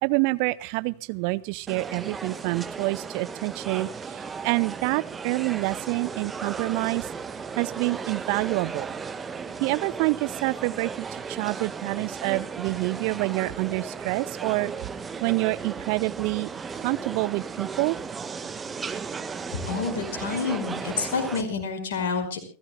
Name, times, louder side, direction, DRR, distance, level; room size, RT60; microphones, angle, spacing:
voice 1, 0.0-7.1 7.6-8.9 9.6-14.7 15.2-16.5 16.8-18.0, right 24 dB, 45° right, 19 dB, 0.6 m, -27 dB
sound 1, 1.7-21.4, right 5 dB, 15° right, 1.5 m, -35 dB
voice 2, 19.5-22.4, left 5 dB, 55° left, 6 dB, 5.1 m, -28 dB
29.0 x 15.5 x 2.2 m, 0.38 s
figure-of-eight pair, 90°, 0 cm